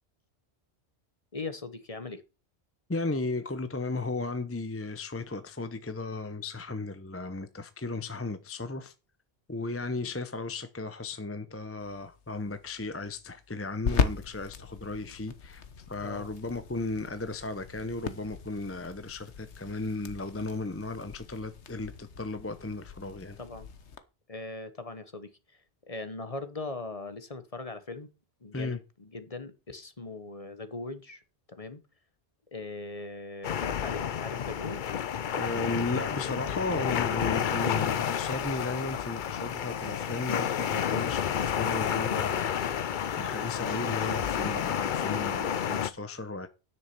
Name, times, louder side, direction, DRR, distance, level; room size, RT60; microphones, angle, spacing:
voice 1, 1.3-2.2 16.0-16.3 23.4-23.7 24.3-25.3 25.9-28.1 28.4-31.2 31.5-31.8 32.5-35.0, left 3 dB, 35° left, 1.1 m, -40 dB
voice 2, 2.9-8.9 9.5-23.4 28.5-28.8 35.4-42.8 43.2-46.5, left 3 dB, 15° left, 0.7 m, -35 dB
sound 1, 11.8-24.0, left 6 dB, 80° left, 1.4 m, -38 dB
sound 2, 33.4-45.9, left 8 dB, 55° left, 0.7 m, -30 dB
10.5 x 6.6 x 5.9 m
omnidirectional pair, 1.1 m